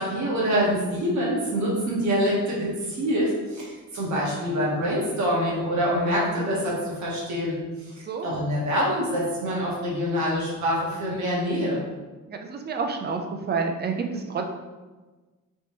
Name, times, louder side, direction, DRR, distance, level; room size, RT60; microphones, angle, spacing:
voice 1, 0.0-7.5 7.8-11.8, equal, 60° right, -5 dB, 1.4 m, -25 dB
voice 2, 8.0-8.4 12.3-14.5, right 5 dB, 35° right, 4 dB, 0.4 m, -29 dB
5.2 x 2.9 x 3.0 m, 1.2 s
wide cardioid pair, 170°, 32 cm